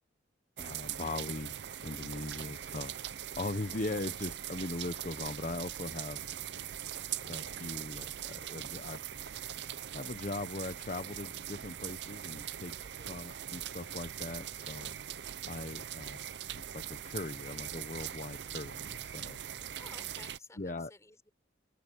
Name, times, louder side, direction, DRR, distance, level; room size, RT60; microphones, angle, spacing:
voice 1, 0.6-1.6 1.8-6.2 7.3-9.0 9.3-9.5 9.9-12.8 13.0-15.1 15.4-16.2 16.7-19.4 20.6-20.9, left 2 dB, 45° left, 0.9 m, -40 dB
sound 1, 0.6-20.4, right 10 dB, 70° right, 0.6 m, -41 dB
voice 2, 2.4-3.0 12.8-13.1 19.8-21.3, left 3 dB, 15° left, 5.2 m, -56 dB
open air
head